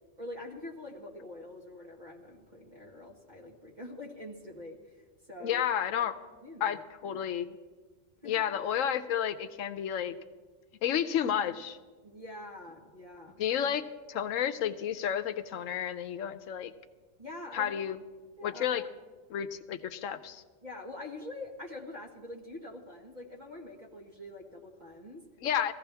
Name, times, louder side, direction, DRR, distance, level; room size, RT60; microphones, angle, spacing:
voice 1, 0.2-5.6 6.0-6.1 6.4-7.3 8.2-8.4 12.0-13.4 17.2-17.8 18.4-19.0 20.6-25.2, left 2 dB, 35° right, -2 dB, 1.7 m, -45 dB
voice 2, 5.4-6.2 6.6-7.6 8.2-10.1 10.8-11.8 13.4-16.7 17.5-18.0 18.4-18.8 19.3-20.4 25.4-25.7, left 9 dB, 80° left, 10 dB, 1.1 m, -31 dB
19.0 x 15.0 x 3.4 m, 1.4 s
omnidirectional pair, 1.3 m